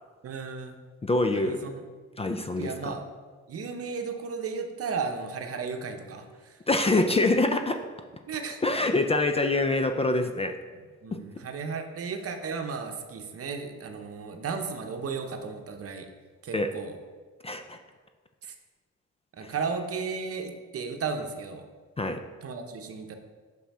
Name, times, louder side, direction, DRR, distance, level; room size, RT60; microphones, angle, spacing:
voice 1, 0.2-0.8 1.3-1.8 2.6-3.1 3.5-6.6 8.3-8.6 11.0-16.1 16.4-17.0 18.4-18.5 19.3-21.6 22.4-23.2, right 5 dB, 50° right, 5 dB, 0.8 m, -34 dB
voice 2, 1.0-1.6 2.2-3.0 6.7-7.8 8.6-10.6 11.1-11.2 16.5-16.7 17.4-17.8 19.4-19.5 22.0-22.2, left 2 dB, 20° left, 6 dB, 0.4 m, -25 dB
6.1 x 5.7 x 4.2 m, 1.5 s
cardioid pair, 90°, 30 cm